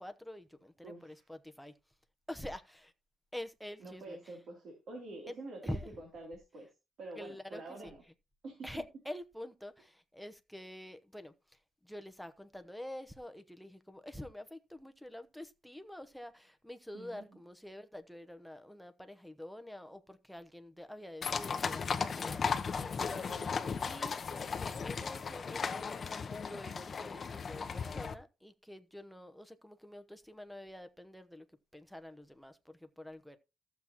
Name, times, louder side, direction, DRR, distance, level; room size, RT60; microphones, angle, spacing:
voice 1, 0.0-1.7 2.3-2.9 3.3-4.2 5.3-5.4 5.6-5.9 7.2-7.9 8.6-22.4 23.8-31.5 31.7-33.4, left 1 dB, ahead, 0.9 m, -47 dB
voice 2, 0.8-1.2 3.8-6.7 7.0-8.0 8.4-8.8 16.9-17.3 23.1-23.5, right 2 dB, 55° right, 3.0 m, -47 dB
sound 1, 21.2-28.1, left 5 dB, 35° left, 0.7 m, -36 dB
14.5 x 7.2 x 2.9 m
cardioid pair, 135°, 0 cm